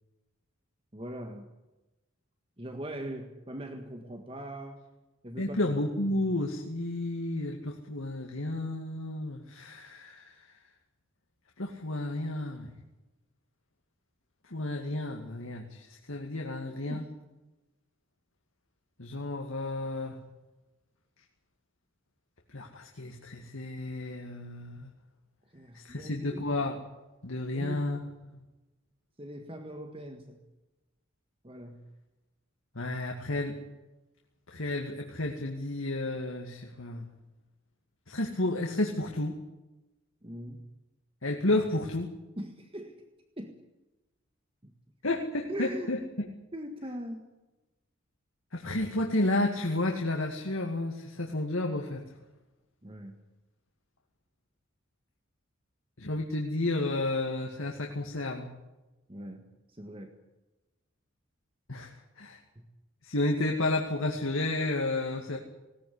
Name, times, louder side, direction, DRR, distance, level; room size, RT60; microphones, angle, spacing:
voice 1, 0.9-1.5 2.6-4.8 5.2-5.6 6.1-6.2 16.8-17.0 25.5-26.4 27.5-27.9 29.2-30.4 31.4-31.9 40.2-40.7 42.4-43.0 43.4-43.6 44.6-44.7 45.5-45.9 46.5-47.2 52.8-53.2 59.1-60.1 62.6-62.7, right 1 dB, 25° right, 5 dB, 1.7 m, -41 dB
voice 2, 5.4-10.5 11.6-12.7 14.4-17.0 19.0-20.2 22.5-24.9 25.7-26.8 27.2-28.0 28.3-28.4 32.7-33.6 34.5-37.1 38.1-39.4 41.2-42.1 45.0-46.0 48.5-52.0 56.0-58.5 61.7-62.4 63.0-65.4, left 2 dB, 85° left, 2 dB, 2.4 m, -31 dB
20.0 x 18.0 x 9.9 m, 1.1 s
head